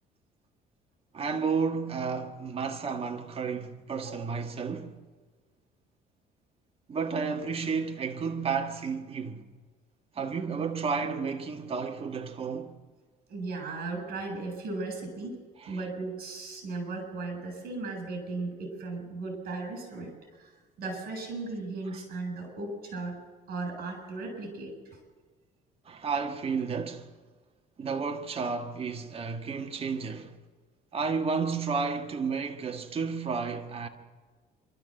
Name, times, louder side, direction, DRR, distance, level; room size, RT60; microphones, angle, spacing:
voice 1, 1.1-5.0 6.9-9.4 10.1-12.8 15.6-15.8 21.9-22.0 25.9-27.1 27.8-30.4 30.9-33.9, right 5 dB, 35° right, 1.7 m, -32 dB
voice 2, 13.3-15.4 15.7-20.5 20.8-23.2 23.5-25.0, right 3 dB, 65° right, 7.6 m, -36 dB
27.0 x 13.0 x 7.8 m
cardioid pair, 110°, 17 cm